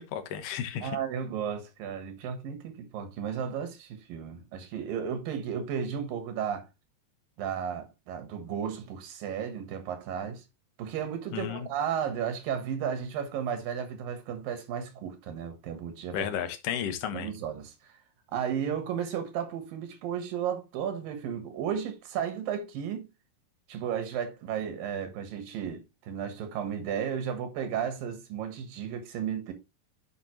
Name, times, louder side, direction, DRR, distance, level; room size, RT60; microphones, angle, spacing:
voice 1, 0.0-1.0 11.3-11.7 16.1-17.3, left 9 dB, 60° left, 1.8 m, -33 dB
voice 2, 0.8-6.7 7.4-10.4 10.8-16.3 17.1-17.7 18.3-23.1 23.7-29.5, right 8 dB, 85° right, 3.2 m, -34 dB
10.0 x 5.1 x 3.1 m
omnidirectional pair, 3.9 m